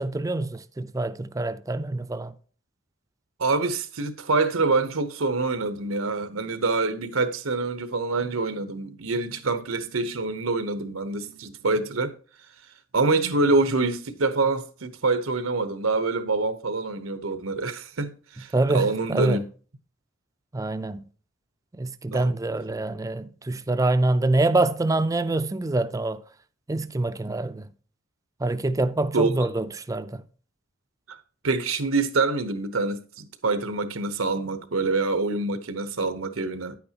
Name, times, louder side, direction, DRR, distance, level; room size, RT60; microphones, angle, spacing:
voice 1, 0.0-2.3 18.5-19.4 20.5-21.0 21.8-26.2 26.7-27.7 28.4-30.2, right 2 dB, 15° right, 0.4 m, -25 dB
voice 2, 3.4-12.1 12.9-19.4 22.1-22.3 27.2-27.3 29.1-29.3 31.1-31.2 31.4-36.8, right 3 dB, 85° right, 1.0 m, -26 dB
10.5 x 8.6 x 2.9 m
head